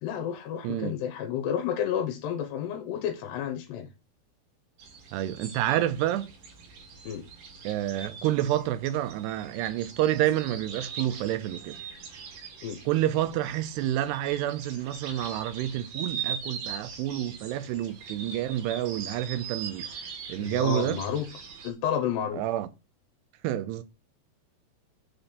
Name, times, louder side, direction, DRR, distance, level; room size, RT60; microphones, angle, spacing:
voice 1, 0.0-3.9 7.1-7.2 12.6-12.8 20.4-21.3 21.6-22.4, left 9 dB, 80° left, 3.0 m, -31 dB
voice 2, 0.6-0.9 5.1-6.3 7.6-11.7 12.9-19.9 20.3-21.0 22.3-22.7 23.4-23.8, right 13 dB, 85° right, 2.8 m, -28 dB
sound 1, 4.8-21.7, right 6 dB, 60° right, 2.8 m, -41 dB
6.8 x 4.3 x 6.7 m
omnidirectional pair, 4.8 m